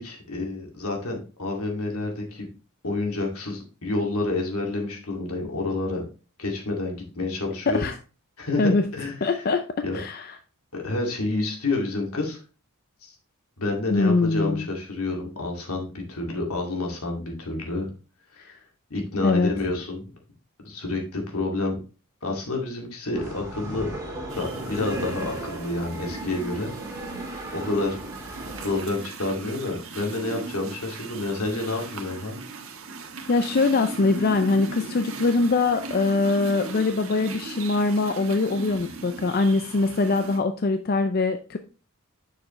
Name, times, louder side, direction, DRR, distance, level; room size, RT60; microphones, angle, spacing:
voice 1, 0.0-2.5 2.8-6.0 6.4-7.9 8.4-9.4 9.8-10.0 10.7-12.4 13.0-13.1 13.6-17.9 18.3-18.6 18.9-20.1 20.6-21.8 22.2-26.7 27.5-28.0 28.6-32.4, left 2 dB, 80° left, 1 dB, 2.2 m, -29 dB
voice 2, 7.7-8.0 8.6-8.9 9.2-9.6 9.9-10.4 13.9-14.7 19.2-19.5 33.3-41.6, left 3 dB, 45° left, 8 dB, 0.5 m, -23 dB
sound 1, 23.1-28.8, right 1 dB, 15° right, 2.4 m, -37 dB
sound 2, 24.3-40.4, right 3 dB, 65° right, 1.3 m, -38 dB
7.2 x 6.6 x 3.1 m, 0.33 s
head